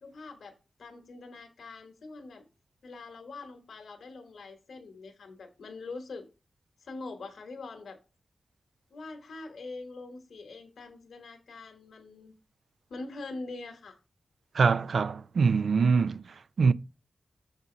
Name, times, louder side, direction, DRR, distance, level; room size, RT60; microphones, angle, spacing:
voice 1, 0.0-2.4 2.8-6.3 6.8-8.0 8.9-12.3 12.9-14.0, left 3 dB, 85° left, 1.1 m, -43 dB
voice 2, 14.5-16.2 16.6-16.7, right 5 dB, 75° right, 0.4 m, -23 dB
6.3 x 4.1 x 4.8 m
cardioid pair, 60°, 0 cm